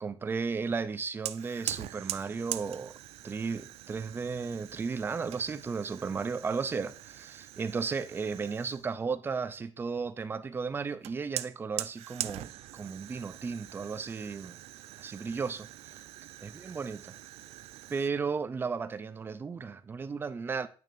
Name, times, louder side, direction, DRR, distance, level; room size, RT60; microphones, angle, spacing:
voice 1, 0.0-2.9 3.2-14.6 15.0-15.7 16.4-17.1 17.9-20.7, right 5 dB, 20° right, 0.4 m, -34 dB
Fire, 1.3-8.9 11.0-18.1, right 14 dB, 90° right, 0.4 m, -43 dB
8.6 x 6.4 x 2.6 m
cardioid pair, 175°, 10 cm